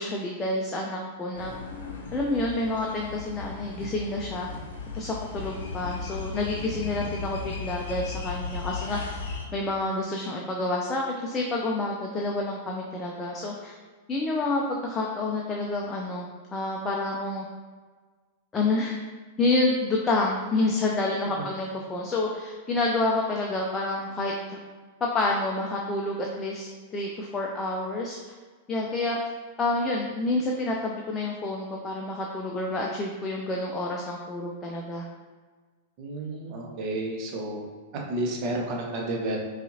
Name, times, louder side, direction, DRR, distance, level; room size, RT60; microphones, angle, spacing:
voice 1, 0.0-1.5 2.1-4.5 4.9-9.0 9.5-13.7 14.1-17.4 18.5-19.0 19.4-24.6 25.1-28.2 28.7-29.2 29.6-35.1, left 2 dB, 20° left, -1 dB, 0.5 m, -28 dB
sound 1, 1.3-9.5, left 4 dB, 65° left, 0.7 m, -36 dB
voice 2, 36.0-37.6 38.1-39.4, right 1 dB, 40° right, -1 dB, 0.9 m, -31 dB
5.5 x 2.4 x 2.7 m, 1.4 s
figure-of-eight pair, 95°, 0 cm